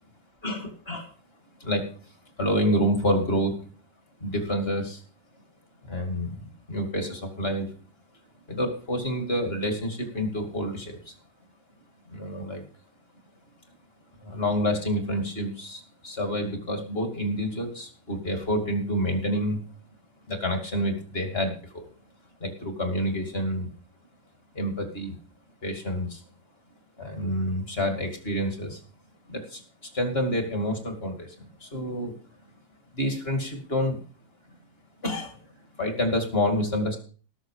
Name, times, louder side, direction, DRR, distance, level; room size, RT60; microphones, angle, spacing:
voice 1, 0.4-1.1 1.6-1.9 2.4-3.6 4.2-5.0 5.8-7.7 8.5-11.1 12.1-12.6 14.2-19.6 20.3-21.9 22.4-23.7 24.5-25.2 25.6-26.2 27.0-28.8 29.3-29.6 29.9-32.1 32.9-34.0 35.0-35.4 35.8-37.0, equal, 30° left, 4 dB, 2.7 m, -28 dB
19.0 x 6.6 x 4.9 m, 0.40 s
omnidirectional pair, 2.0 m